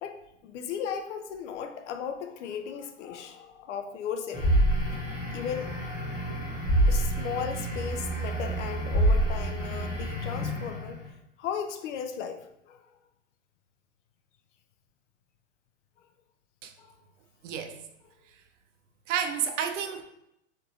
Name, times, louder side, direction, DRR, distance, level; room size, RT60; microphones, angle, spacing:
voice 1, 0.0-4.6 4.9-5.7 6.9-11.0 11.4-12.8 16.8-16.9, left 7 dB, 70° left, 7 dB, 0.5 m, -36 dB
sound 1, 4.3-11.0, right 1 dB, 35° left, 1.1 m, -27 dB
voice 2, 17.4-17.8 19.1-20.0, right 8 dB, 80° right, 6 dB, 0.5 m, -30 dB
2.8 x 2.6 x 2.3 m, 0.80 s
hypercardioid pair, 145°, 37 cm